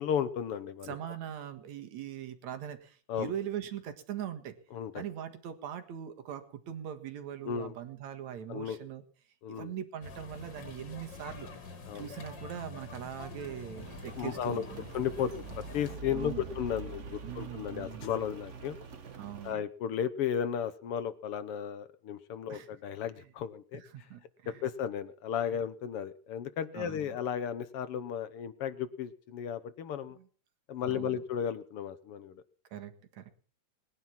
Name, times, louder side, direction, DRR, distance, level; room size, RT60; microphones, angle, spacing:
voice 1, 0.0-0.9 3.1-3.3 4.7-5.0 7.4-7.7 8.5-8.8 9.4-9.7 11.9-12.1 14.2-14.7 14.9-18.8 19.4-23.8 24.5-30.2 30.7-32.4, left 8 dB, 65° left, 13 dB, 1.6 m, -34 dB
voice 2, 0.8-4.5 4.9-9.0 9.5-11.7 11.9-14.9 16.1-16.5 17.2-18.1 19.2-19.6 22.5-22.7 23.7-24.7 25.5-25.6 26.7-27.1 30.2-30.3 30.8-31.2 32.7-33.3, right 9 dB, 70° right, 8 dB, 3.0 m, -41 dB
sound 1, 10.0-16.0, left 4 dB, 40° left, 2.3 m, -46 dB
Rain, 13.8-19.5, right 5 dB, 50° right, 0.9 m, -45 dB
20.5 x 11.0 x 5.9 m, 0.42 s
omnidirectional pair, 3.4 m